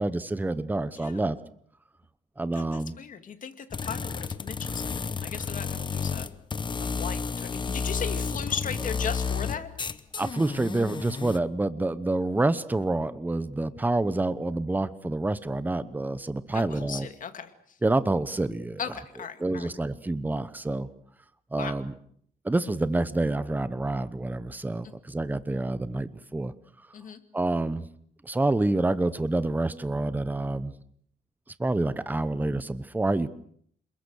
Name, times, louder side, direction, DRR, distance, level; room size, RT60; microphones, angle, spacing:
voice 1, 0.0-1.4 2.4-3.0 6.7-6.8 10.2-17.1 17.8-18.8 19.4-20.9 21.5-21.9 22.4-26.5 27.3-27.9 28.2-30.7 31.6-33.3, right 2 dB, 10° right, 15 dB, 0.9 m, -27 dB
voice 2, 2.6-6.3 6.8-9.7 16.5-17.5 18.8-19.7 21.6-21.7 26.9-27.2, left 7 dB, 50° left, 8 dB, 2.5 m, -37 dB
sound 1, 3.7-11.4, left 5 dB, 25° left, 1.0 m, -31 dB
27.5 x 21.5 x 6.4 m, 0.63 s
cardioid pair, 135°, 17 cm